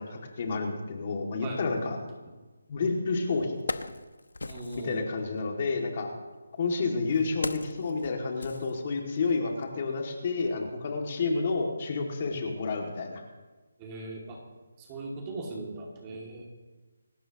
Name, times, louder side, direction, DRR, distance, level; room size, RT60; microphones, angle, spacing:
voice 1, 0.0-2.0 2.7-3.7 4.8-6.1 6.6-13.2, left 4 dB, 35° left, 2 dB, 2.4 m, -30 dB
Wood, 2.8-2.9 3.4-5.0 6.0-9.3 9.6-9.8, left 3 dB, 85° left, 1.0 m, -39 dB
voice 2, 4.5-5.0 13.8-14.4 14.8-16.5, right 2 dB, 20° right, -1 dB, 2.5 m, -39 dB
27.5 x 13.0 x 3.0 m, 1.2 s
figure-of-eight pair, 165°, 0 cm